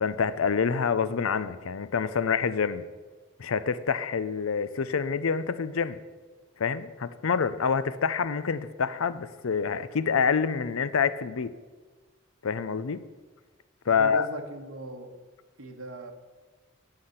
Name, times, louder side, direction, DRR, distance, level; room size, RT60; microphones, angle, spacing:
voice 1, 0.0-2.8 3.4-6.0 6.6-11.5 12.4-13.0 13.9-14.3, left 6 dB, 90° left, 14 dB, 0.6 m, -27 dB
voice 2, 13.8-15.1 15.6-16.1, right 2 dB, 85° right, 4 dB, 1.5 m, -39 dB
10.5 x 5.8 x 8.0 m, 1.3 s
head